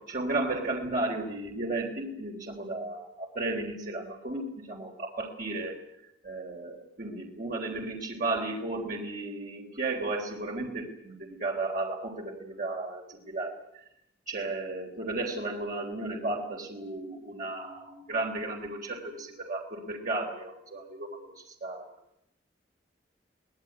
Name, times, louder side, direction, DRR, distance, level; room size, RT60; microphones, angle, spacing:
voice 1, 0.1-5.8 6.2-13.9 14.3-21.9, right 2 dB, 50° right, -1 dB, 3.9 m, -34 dB
23.5 x 19.0 x 9.5 m, 0.78 s
head